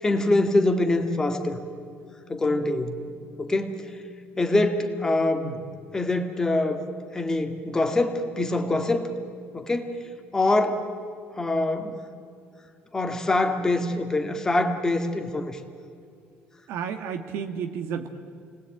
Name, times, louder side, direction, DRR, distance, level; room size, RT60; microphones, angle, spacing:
voice 1, 0.0-1.6 2.3-3.0 3.4-4.0 4.4-5.5 5.9-6.9 7.1-9.1 9.5-10.0 10.3-10.9 11.3-12.0 12.9-15.6, left 2 dB, 15° left, 6 dB, 2.0 m, -24 dB
voice 2, 16.7-18.1, right 7 dB, 65° right, 5 dB, 1.5 m, -32 dB
29.0 x 19.5 x 8.9 m, 2.4 s
cardioid pair, 150°, 4 cm